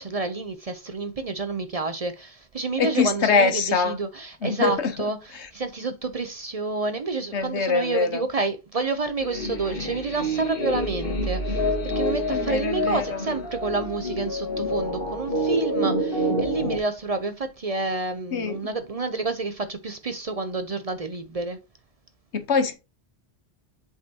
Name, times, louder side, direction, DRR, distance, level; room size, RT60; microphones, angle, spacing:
voice 1, 0.0-5.2 5.5-21.6, right 3 dB, 40° right, 0.6 m, -29 dB
voice 2, 2.8-4.0 4.4-5.1 5.3-5.5 7.3-8.2 12.3-13.4 18.3-18.7 22.3-22.7, left 5 dB, 90° left, 1.3 m, -24 dB
sound 1, 9.2-16.8, equal, 55° left, 1.6 m, -27 dB
7.3 x 5.3 x 2.8 m
omnidirectional pair, 1.1 m